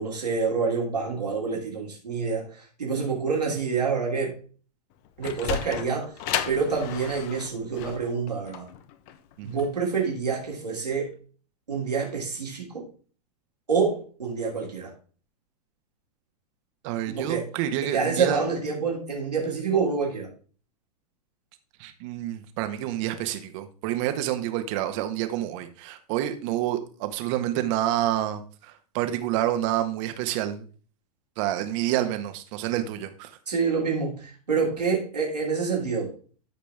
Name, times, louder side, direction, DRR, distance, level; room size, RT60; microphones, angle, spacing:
voice 1, 0.0-4.4 5.2-6.1 6.5-8.7 9.4-11.2 11.7-12.9 13.7-14.9 17.1-17.5 17.8-20.3 33.5-36.1, right 5 dB, 90° right, 3.1 m, -27 dB
Sliding door, 4.9-10.1, left 10 dB, 45° left, 1.1 m, -34 dB
voice 2, 16.8-18.4 21.8-30.6 31.4-33.3, right 13 dB, 50° right, 1.6 m, -28 dB
13.5 x 5.0 x 3.6 m
hypercardioid pair, 105°, 20 cm